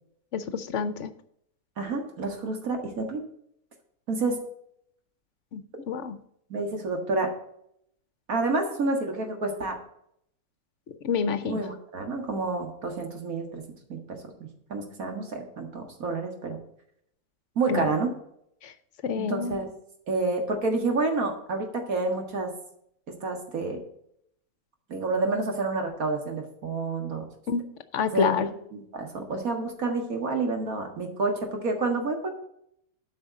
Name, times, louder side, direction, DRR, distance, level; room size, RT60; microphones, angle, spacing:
voice 1, 0.3-1.1 5.5-5.6 5.9-6.2 10.9-11.6 17.7-17.9 18.6-18.7 19.0-19.6 27.5-27.6 27.9-28.5, left 6 dB, 60° left, 12 dB, 0.9 m, -28 dB
voice 2, 1.8-3.3 4.1-4.4 6.5-7.3 8.3-9.8 11.4-13.6 13.9-14.3 14.7-16.6 17.6-18.2 19.2-19.7 20.1-22.5 23.2-23.8 24.9-27.3 28.1-32.3, right 3 dB, 70° right, 3 dB, 2.1 m, -29 dB
8.6 x 5.5 x 7.4 m, 0.73 s
omnidirectional pair, 1.6 m